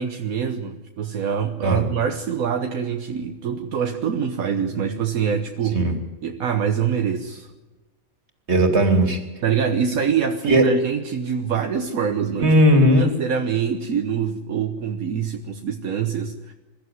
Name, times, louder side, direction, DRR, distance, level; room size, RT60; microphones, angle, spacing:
voice 1, 0.0-5.9 6.2-7.5 9.4-12.5 13.0-16.5, right 7 dB, 75° right, 5 dB, 1.5 m, -25 dB
voice 2, 8.5-9.2 10.5-10.7 12.4-13.1, right 1 dB, 50° right, 5 dB, 3.2 m, -16 dB
22.5 x 14.5 x 9.5 m, 1.2 s
omnidirectional pair, 1.5 m